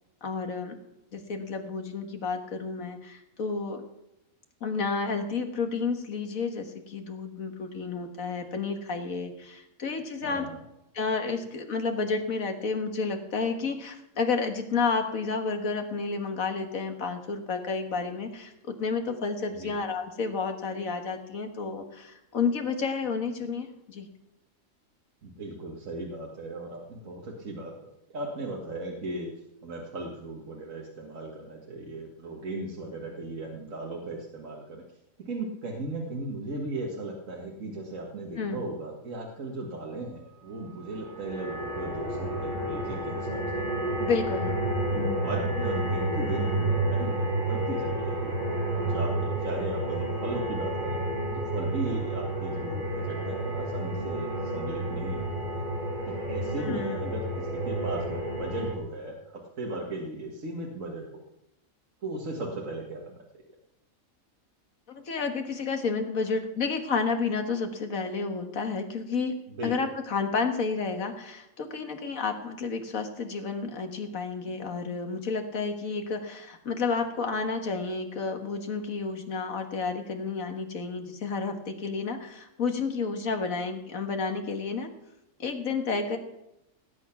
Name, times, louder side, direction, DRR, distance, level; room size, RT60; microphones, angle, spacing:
voice 1, 0.2-0.8 1.1-3.8 4.6-10.5 10.9-24.1 38.4-38.6 44.0-44.6 44.9-45.3 56.6-57.1 64.9-69.4 69.6-84.9 85.4-86.2, left 4 dB, 80° left, 5 dB, 1.9 m, -31 dB
voice 2, 10.2-10.6 19.5-19.7 25.2-27.7 28.1-29.3 29.6-34.8 35.3-43.8 44.9-48.4 48.7-51.0 51.3-55.3 55.5-55.6 56.0-61.2 62.0-63.1 69.6-69.7, right 2 dB, 70° right, -1 dB, 2.0 m, -37 dB
sound 1, 40.9-58.7, right 1 dB, 40° right, 3.6 m, -30 dB
18.0 x 8.8 x 5.9 m, 0.88 s
omnidirectional pair, 1.4 m